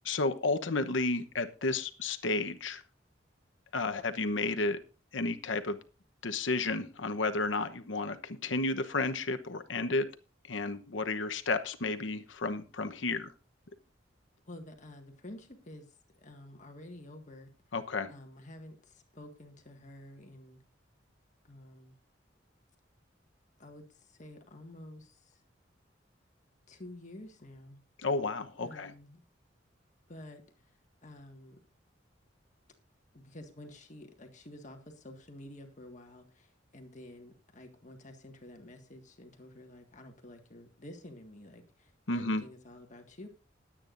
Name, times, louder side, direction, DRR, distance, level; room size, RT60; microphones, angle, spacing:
voice 1, 0.0-2.8 3.7-4.8 5.1-5.8 6.2-10.1 10.5-13.3 17.7-18.1 28.0-28.9 42.1-42.4, left 3 dB, 90° left, 8 dB, 1.0 m, -32 dB
voice 2, 14.5-17.5 18.1-20.6 21.4-22.0 23.6-25.4 26.7-27.8 28.6-29.2 30.1-31.6 33.1-43.3, left 1 dB, 40° left, 4 dB, 1.8 m, -50 dB
21.0 x 8.9 x 2.6 m, 0.34 s
head